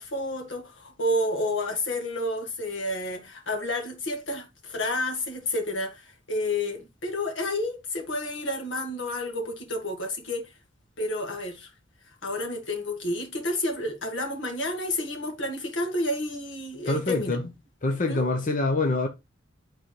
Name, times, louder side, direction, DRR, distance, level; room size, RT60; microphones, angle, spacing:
voice 1, 0.0-10.5 11.0-11.7 12.2-17.5 18.1-18.2, left 1 dB, 70° left, 1.9 m, -30 dB
voice 2, 16.8-17.4 17.8-19.1, left 2 dB, 45° left, 0.8 m, -25 dB
11.5 x 3.9 x 3.2 m
head